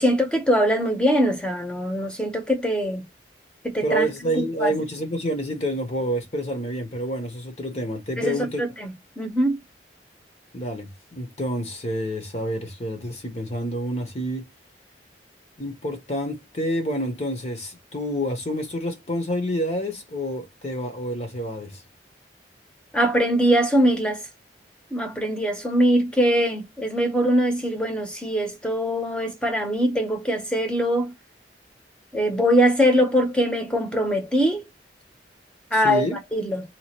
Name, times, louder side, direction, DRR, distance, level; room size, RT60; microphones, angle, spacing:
voice 1, 0.0-3.0 3.6-4.1 4.3-4.7 8.2-9.6 22.9-24.2 24.9-31.1 32.1-34.6 35.7-36.1 36.3-36.6, equal, 5° left, 0.9 m, -22 dB
voice 2, 3.8-8.6 10.5-14.5 15.6-21.8 35.7-36.2, equal, 35° left, 0.9 m, -28 dB
2.8 x 2.4 x 4.3 m
head